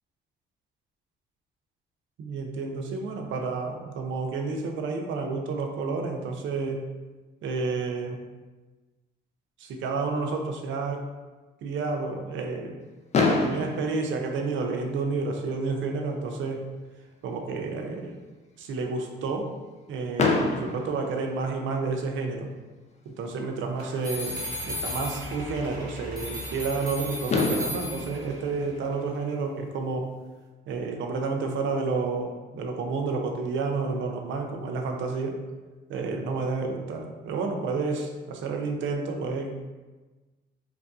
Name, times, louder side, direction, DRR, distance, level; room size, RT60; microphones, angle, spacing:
voice 1, 2.2-6.8 7.4-8.2 9.6-11.1 11.6-12.8 13.2-16.6 17.2-18.2 18.6-19.5 19.9-22.5 23.1-30.1 30.7-35.4 35.9-39.6, right 4 dB, 75° right, 3 dB, 0.5 m, -30 dB
Fireworks, 13.1-15.2 16.0-16.1 16.3-16.5 16.8-16.9 20.2-22.0 23.7-23.8 26.8-26.9 27.3-29.6, left 3 dB, 35° left, 0.4 m, -28 dB
sound 1, 23.8-29.3, right 1 dB, 55° right, 0.9 m, -42 dB
sound 2, 24.0-25.7 26.2-28.4, left 1 dB, 20° right, 0.6 m, -35 dB
2.9 x 2.5 x 2.3 m, 1.2 s
cardioid pair, 90°, 20 cm